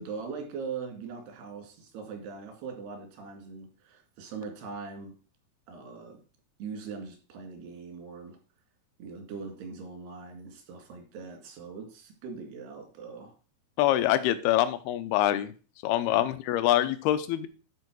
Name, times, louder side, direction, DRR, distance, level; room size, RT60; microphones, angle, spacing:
voice 1, 0.0-5.1 5.7-6.2 6.6-8.4 9.0-13.3 13.8-14.0 16.0-16.3, right 5 dB, 90° right, 3 dB, 4.2 m, -41 dB
voice 2, 13.8-15.5 15.8-17.5, left 13 dB, 80° left, 13 dB, 2.5 m, -25 dB
11.0 x 4.5 x 6.1 m, 0.37 s
omnidirectional pair, 4.6 m